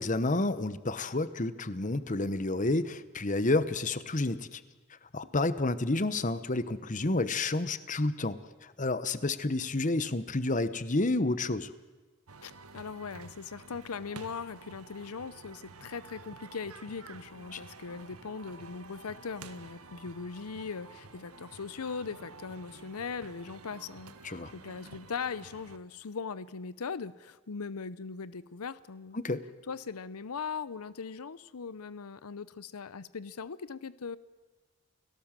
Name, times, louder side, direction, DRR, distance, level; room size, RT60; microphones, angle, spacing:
voice 1, 0.0-4.6 5.1-11.7 17.5-17.6 24.2-24.5 29.1-29.4, left 2 dB, 35° left, 13 dB, 1.0 m, -30 dB
sound 1, 12.3-25.8, right 3 dB, 90° right, 1.7 m, -50 dB
voice 2, 12.4-29.2 29.7-34.2, left 5 dB, 85° left, 17 dB, 0.7 m, -40 dB
29.5 x 17.5 x 7.5 m, 1.3 s
head